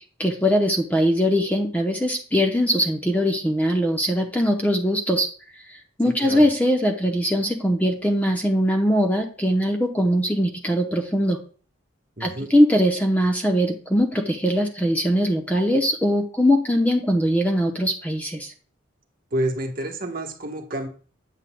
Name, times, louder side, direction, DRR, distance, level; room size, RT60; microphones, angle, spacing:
voice 1, 0.2-5.3 5.7-11.4 12.2-18.5, equal, 10° left, 3 dB, 0.8 m, -21 dB
voice 2, 6.0-6.4 12.2-12.5 19.3-20.9, right 1 dB, 45° right, 3 dB, 1.2 m, -29 dB
9.0 x 8.1 x 2.2 m, 0.41 s
head